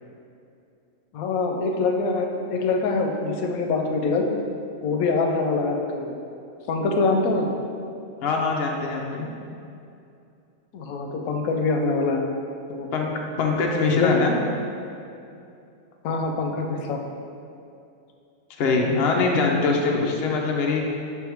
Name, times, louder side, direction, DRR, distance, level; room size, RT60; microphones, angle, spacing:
voice 1, 1.1-4.3 4.8-6.2 6.7-7.5 10.7-12.2 12.7-12.9 13.8-14.2 16.0-17.0, left 3 dB, 90° left, 3 dB, 1.0 m, -24 dB
voice 2, 8.2-9.3 12.9-13.1 13.4-14.3 18.6-20.8, left 4 dB, 55° left, 0 dB, 0.8 m, -23 dB
5.8 x 3.5 x 4.5 m, 2.6 s
omnidirectional pair, 1.4 m